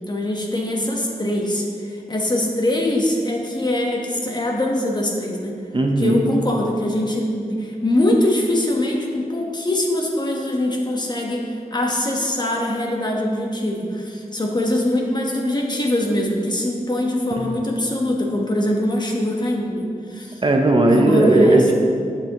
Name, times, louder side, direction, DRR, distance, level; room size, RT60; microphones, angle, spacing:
voice 1, 0.1-5.6 6.0-20.4 20.9-21.6, left 1 dB, 30° left, 0 dB, 1.2 m, -23 dB
voice 2, 5.7-6.2 17.4-17.6 20.4-21.7, right 2 dB, 40° right, 2 dB, 0.8 m, -16 dB
11.0 x 7.0 x 3.0 m, 2.3 s
wide cardioid pair, 95°, 14 cm